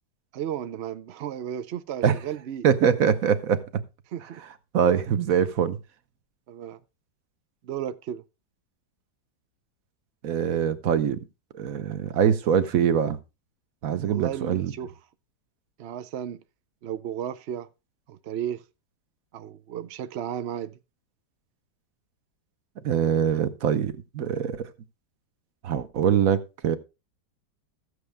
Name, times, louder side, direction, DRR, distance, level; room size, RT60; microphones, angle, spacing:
voice 1, 0.3-2.7 4.1-4.4 6.5-6.8 7.6-8.2 14.1-14.9 15.8-16.4 16.8-17.7 18.1-18.6 19.3-20.8, right 10 dB, 75° right, 0.6 m, -34 dB
voice 2, 2.6-3.8 4.7-5.8 10.2-11.2 11.5-13.2 13.8-14.7 22.8-24.7 25.6-26.8, right 8 dB, 55° right, 1.2 m, -23 dB
14.0 x 8.1 x 3.4 m
omnidirectional pair, 1.9 m